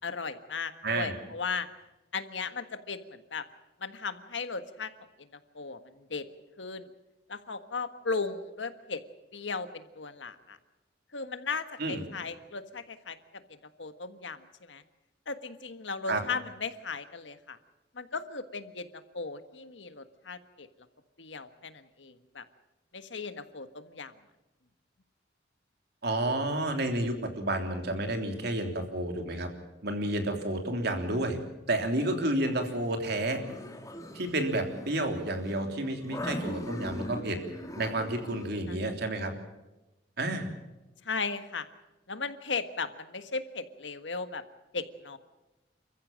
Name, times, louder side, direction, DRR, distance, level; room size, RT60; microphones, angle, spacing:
voice 1, 0.0-1.7 2.1-3.4 3.8-4.9 5.2-5.3 5.5-6.3 6.6-6.9 7.3-9.0 9.3-10.6 11.1-13.2 13.5-14.8 15.3-17.6 17.9-20.7 21.2-22.4 22.9-24.1 38.7-38.8 41.0-41.7 42.1-44.4 44.7-45.2, left 4 dB, 90° left, 10 dB, 1.5 m, -36 dB
voice 2, 0.8-1.1 11.8-12.0 16.1-16.2 26.0-29.5 29.8-31.4 31.7-33.4 34.1-37.4 37.7-39.3 40.2-40.5, right 1 dB, 65° right, 5 dB, 3.3 m, -30 dB
sound 1, 32.4-38.5, left 1 dB, 20° left, 2.2 m, -40 dB
28.0 x 14.5 x 7.5 m, 1.0 s
head